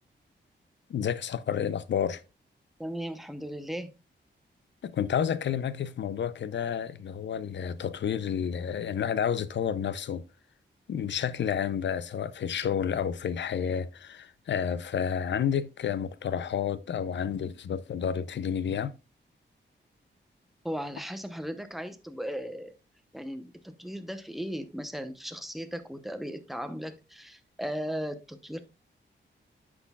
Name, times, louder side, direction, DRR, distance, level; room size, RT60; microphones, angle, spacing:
voice 1, 0.9-2.2 4.8-10.2 10.9-18.9, left 8 dB, 70° left, 0.6 m, -30 dB
voice 2, 2.8-4.0 20.6-22.7 23.1-28.6, equal, ahead, 0.8 m, -37 dB
9.7 x 6.2 x 2.3 m
wide cardioid pair, 115°, 20 cm